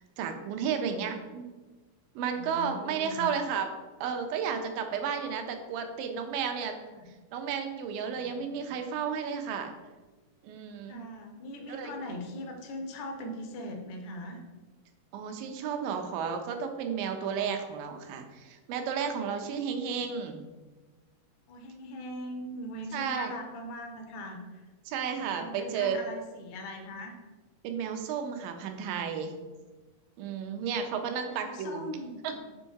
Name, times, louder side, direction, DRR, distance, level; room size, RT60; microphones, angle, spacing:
voice 1, 0.2-1.5 2.2-3.7 4.0-6.8 7.3-9.7 10.4-11.0 11.7-11.9 15.1-20.4 22.9-23.4 24.9-26.0 27.6-29.3 30.2-31.9 32.2-32.4, right 7 dB, 90° right, 6 dB, 2.4 m, -33 dB
voice 2, 2.3-3.3 6.9-7.1 8.1-8.8 10.9-14.4 19.3-19.6 19.9-20.0 21.5-24.6 25.1-27.2 31.1-32.4, left 1 dB, 70° left, 3 dB, 2.0 m, -41 dB
6.6 x 3.5 x 4.6 m, 1.2 s
omnidirectional pair, 3.9 m